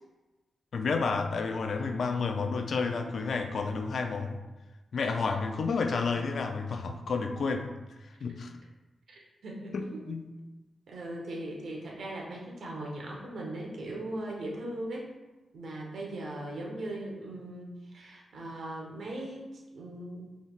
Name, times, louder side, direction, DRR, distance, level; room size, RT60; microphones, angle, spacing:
voice 1, 0.7-4.4 4.9-7.7 8.2-8.5 9.7-10.3, left 4 dB, 70° left, 6 dB, 0.4 m, -30 dB
voice 2, 9.1-10.1 10.9-15.1 15.5-20.2, right 1 dB, 80° right, -2 dB, 1.0 m, -39 dB
5.5 x 3.3 x 2.4 m, 1.1 s
cardioid pair, 85°, 0 cm